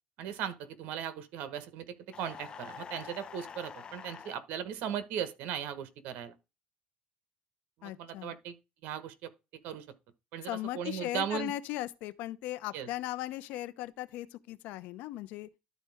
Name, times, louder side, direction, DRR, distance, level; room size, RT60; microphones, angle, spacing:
voice 1, 0.2-6.4 7.8-8.5 8.8-9.3 9.6-9.8 10.3-11.5 12.7-12.9, right 9 dB, 70° right, 1.3 m, -38 dB
sound 1, 2.1-4.4, left 7 dB, 35° left, 0.7 m, -46 dB
voice 2, 7.8-8.3 10.4-15.5, left 15 dB, 75° left, 0.7 m, -38 dB
12.0 x 4.3 x 3.5 m
cardioid pair, 120°, 3 cm